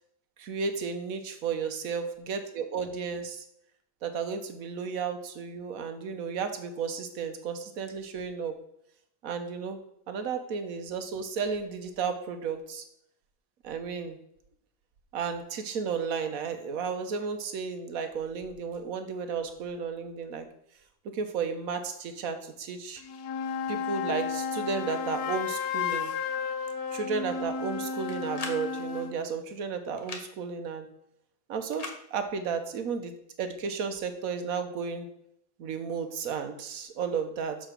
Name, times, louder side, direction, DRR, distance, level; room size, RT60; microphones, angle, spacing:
voice 1, 0.4-3.4 4.0-8.5 9.2-9.8 10.1-12.8 13.6-14.2 15.1-20.5 21.1-23.0 23.7-26.1 26.9-30.9 31.5-33.1 33.4-35.1 35.6-37.6, right 5 dB, 65° right, 8 dB, 1.3 m, -33 dB
sound 1, 23.0-29.2, left 6 dB, 90° left, 1.3 m, -33 dB
sound 2, 28.1-28.6 30.0-30.3 31.7-32.0, left 3 dB, 30° left, 0.8 m, -38 dB
6.8 x 4.9 x 5.8 m, 0.77 s
omnidirectional pair, 1.7 m